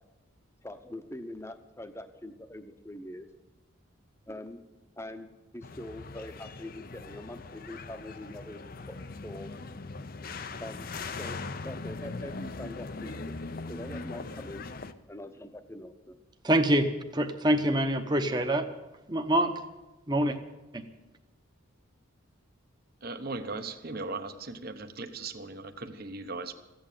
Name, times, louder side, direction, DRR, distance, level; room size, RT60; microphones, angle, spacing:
voice 1, 0.6-3.3 4.3-4.6 5.0-9.0 9.2-9.5 10.5-10.9 11.2-11.4 11.6-13.4 13.7-14.6 15.1-16.2, left 1 dB, 15° left, 8 dB, 0.9 m, -43 dB
sound 1, 5.6-14.9, left 3 dB, 45° left, 0.6 m, -40 dB
voice 2, 16.4-16.9 17.1-18.7 19.1-19.5 20.1-20.4 20.7-20.8, right 1 dB, 20° right, 6 dB, 0.9 m, -25 dB
voice 3, 23.0-26.5, right 3 dB, 45° right, 9 dB, 1.0 m, -38 dB
15.0 x 8.9 x 9.2 m, 1.0 s
head